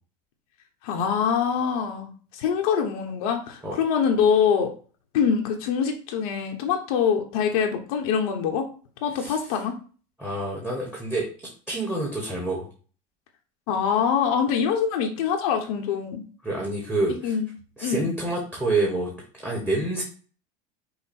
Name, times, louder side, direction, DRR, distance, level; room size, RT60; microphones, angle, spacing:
voice 1, 0.8-4.7 5.1-8.7 9.0-9.7 13.7-16.2 17.2-17.5 17.8-18.1, left 7 dB, 80° left, 2 dB, 0.9 m, -24 dB
voice 2, 10.2-11.3 11.7-12.7 16.4-17.3 17.8-19.1 19.4-20.0, right 2 dB, 5° right, -2 dB, 1.1 m, -27 dB
5.7 x 2.1 x 4.3 m, 0.39 s
supercardioid pair, 140°, 18 cm